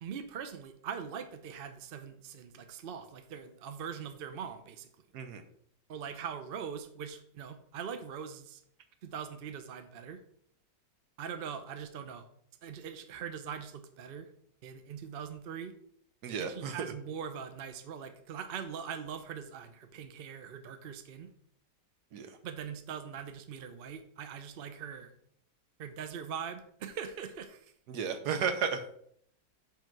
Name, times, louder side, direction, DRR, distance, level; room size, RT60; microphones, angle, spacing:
voice 1, 0.0-4.9 5.9-8.6 9.0-10.2 11.2-12.2 12.6-14.3 14.6-15.7 16.4-21.3 22.4-25.1 25.8-27.7, right 7 dB, 55° right, 8 dB, 0.6 m, -42 dB
voice 2, 16.2-16.7 22.1-22.3 27.9-28.8, right 6 dB, 70° right, 9 dB, 1.4 m, -33 dB
5.7 x 5.1 x 5.9 m, 0.67 s
omnidirectional pair, 1.9 m